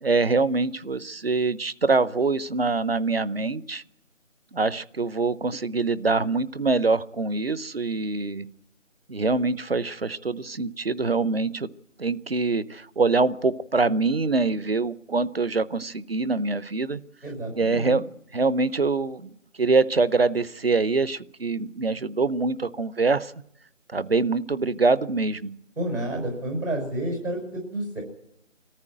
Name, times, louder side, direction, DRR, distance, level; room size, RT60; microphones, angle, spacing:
voice 1, 0.0-3.8 4.5-8.5 9.1-11.7 12.0-17.0 17.5-18.1 18.3-19.3 19.6-23.3 23.9-25.5, right 3 dB, 50° right, 18 dB, 0.7 m, -24 dB
voice 2, 17.2-18.0 25.8-28.0, right 1 dB, 80° right, 1 dB, 6.2 m, -30 dB
24.0 x 14.0 x 9.1 m, 0.79 s
figure-of-eight pair, 165°, 39 cm